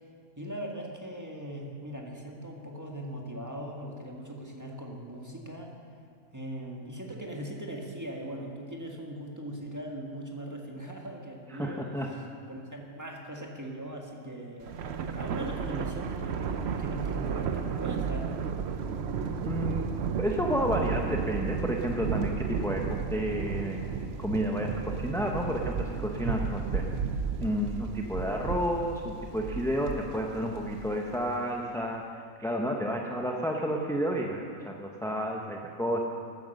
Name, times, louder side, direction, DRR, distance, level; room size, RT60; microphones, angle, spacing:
voice 1, 0.4-5.8 6.3-12.2 12.5-14.7 15.1-16.4 16.8-18.3, right 1 dB, 15° right, 0 dB, 1.5 m, -40 dB
voice 2, 11.5-12.1 19.4-19.9 20.2-23.8 24.2-26.8 27.4-36.0, equal, 5° left, 0 dB, 0.6 m, -31 dB
Thunder, 14.6-31.2, right 6 dB, 60° right, 0.8 m, -33 dB
14.0 x 9.1 x 6.5 m, 2.2 s
omnidirectional pair, 1.4 m